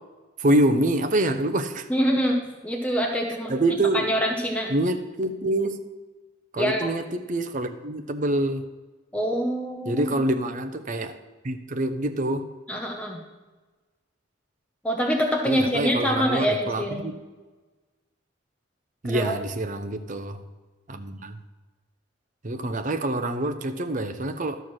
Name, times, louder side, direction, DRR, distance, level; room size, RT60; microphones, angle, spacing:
voice 1, 0.4-1.9 3.5-4.1 4.7-5.8 6.5-8.6 9.9-11.2 11.4-12.5 15.5-17.1 19.0-20.4 20.9-21.4 22.4-24.6, right 1 dB, 40° right, 7 dB, 0.7 m, -26 dB
voice 2, 1.9-2.4 2.6-3.5 3.9-4.7 6.6-6.9 9.1-10.2 12.7-13.2 14.8-17.2 19.0-19.4, equal, 5° left, 0 dB, 0.9 m, -25 dB
12.5 x 4.6 x 6.3 m, 1.3 s
head